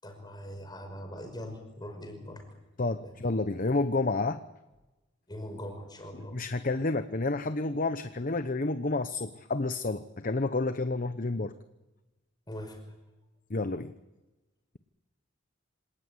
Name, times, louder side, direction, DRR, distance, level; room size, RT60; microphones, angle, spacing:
voice 1, 0.0-2.4 3.0-3.1 5.3-6.4 12.5-12.8, equal, 20° left, 5 dB, 5.6 m, -41 dB
voice 2, 2.8-4.4 6.1-11.5 13.5-13.9, left 3 dB, 45° left, 10 dB, 0.9 m, -30 dB
26.5 x 18.5 x 9.7 m, 1.1 s
head